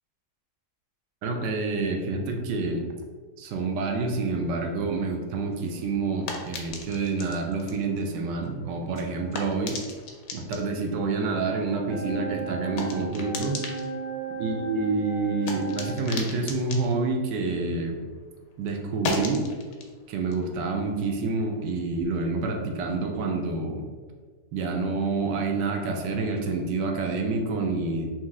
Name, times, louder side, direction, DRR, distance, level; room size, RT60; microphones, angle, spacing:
voice 1, 1.2-2.9 3.4-9.8 10.3-13.6 14.4-18.0 18.6-19.5 20.1-23.8 24.5-28.1, right 3 dB, 85° right, 3 dB, 1.3 m, -28 dB
sound 1, 5.4-18.2 18.5-21.7, left 3 dB, 90° left, 1.3 m, -39 dB
sound 2, 11.9-16.0, right 4 dB, 45° right, 0.3 m, -35 dB
4.4 x 2.9 x 3.6 m, 1.5 s
omnidirectional pair, 1.8 m